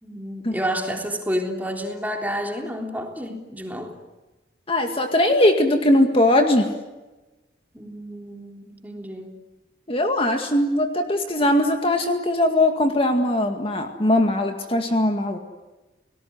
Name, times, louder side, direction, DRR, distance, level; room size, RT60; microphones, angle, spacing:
voice 1, 0.0-4.0 7.7-9.4, equal, 10° right, 2 dB, 3.5 m, -30 dB
voice 2, 4.7-6.7 9.9-15.4, left 1 dB, 30° left, 5 dB, 2.1 m, -20 dB
30.0 x 19.0 x 9.6 m, 1.1 s
head